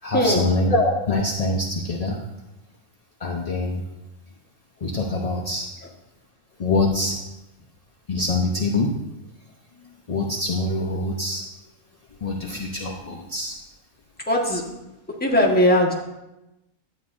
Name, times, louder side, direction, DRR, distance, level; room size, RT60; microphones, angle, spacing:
voice 1, 0.0-2.2 3.2-3.8 4.8-5.7 6.6-7.2 8.1-8.9 10.1-11.4 12.2-13.6, left 2 dB, 40° left, -1 dB, 0.5 m, -24 dB
voice 2, 14.3-14.6 15.2-15.9, left 1 dB, 5° left, -2 dB, 1.2 m, -19 dB
11.5 x 8.5 x 2.6 m, 0.95 s
omnidirectional pair, 1.5 m